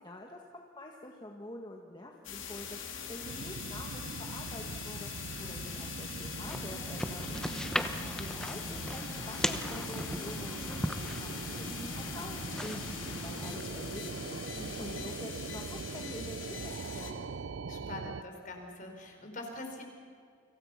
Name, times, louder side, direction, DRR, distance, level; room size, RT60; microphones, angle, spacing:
voice 1, 0.0-7.3 8.1-10.8 11.2-14.4 14.8-17.3, left 1 dB, 20° left, 0 dB, 1.7 m, -46 dB
sound 1, 2.2-17.1, left 7 dB, 85° left, 3.1 m, -42 dB
sound 2, 3.2-18.2, right 4 dB, 80° right, 0.6 m, -42 dB
sound 3, 6.4-13.6, left 1 dB, 5° left, 1.0 m, -38 dB
voice 2, 7.3-7.7 14.5-15.1 17.7-19.8, left 1 dB, 40° left, 3 dB, 4.6 m, -44 dB
29.5 x 26.0 x 5.9 m, 2.2 s
head